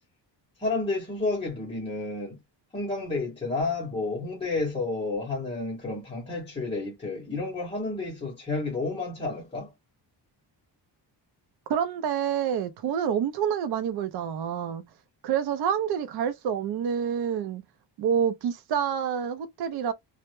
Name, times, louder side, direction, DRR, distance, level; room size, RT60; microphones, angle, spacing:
voice 1, 0.6-2.4 2.7-9.7, left 3 dB, 15° left, 0.6 m, -31 dB
voice 2, 11.7-14.8 15.2-17.6 18.0-19.9, right 8 dB, 60° right, 0.5 m, -27 dB
2.0 x 2.0 x 3.0 m
wide cardioid pair, 165°, 43 cm